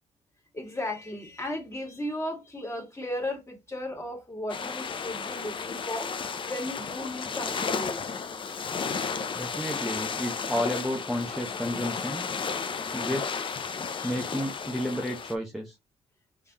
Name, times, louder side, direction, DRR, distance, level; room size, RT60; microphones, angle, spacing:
voice 1, 0.5-6.1 6.4-8.0 13.9-14.2, left 1 dB, 20° left, 2.1 m, -35 dB
sound 1, 4.5-15.3, left 5 dB, 40° left, 0.6 m, -33 dB
voice 2, 9.3-12.3 12.9-13.6 14.0-15.7, equal, ahead, 0.9 m, -32 dB
3.7 x 3.4 x 2.9 m
supercardioid pair, 70°, 13 cm